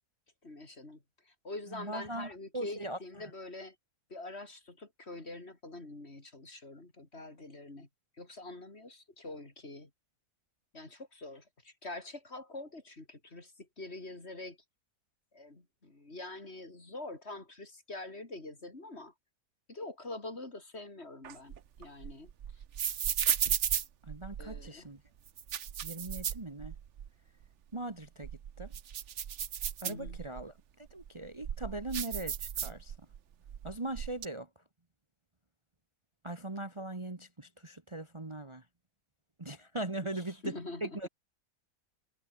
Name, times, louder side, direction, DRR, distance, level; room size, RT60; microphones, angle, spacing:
voice 1, 0.4-1.0 1.4-3.8 4.1-7.9 8.2-9.9 10.7-13.5 13.8-14.6 15.3-19.1 19.7-22.3 24.4-24.9 29.9-30.2 40.1-41.1, left 2 dB, 40° left, 4.0 m, -45 dB
voice 2, 1.7-3.3 24.0-25.0 25.8-26.7 27.7-28.3 28.6-28.7 29.8-32.9 33.6-34.5 36.2-38.6 39.4-40.5 40.8-41.1, right 2 dB, 20° right, 1.5 m, -40 dB
sound 1, 21.2-24.7 25.3-27.1 27.4-27.5 28.1-30.4 31.0-33.2 33.5-34.3, right 9 dB, 55° right, 1.1 m, -35 dB
omnidirectional pair, 1.6 m